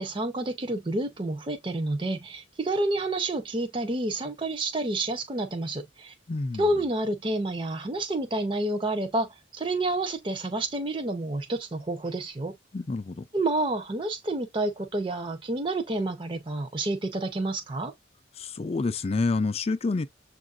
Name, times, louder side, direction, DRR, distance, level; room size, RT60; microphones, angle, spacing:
voice 1, 0.0-6.1 6.6-12.6 13.3-17.9, right 2 dB, 25° right, 0.6 m, -29 dB
voice 2, 6.3-6.7 12.7-13.3 18.4-20.1, left 3 dB, 35° left, 0.4 m, -28 dB
7.1 x 2.5 x 2.4 m
head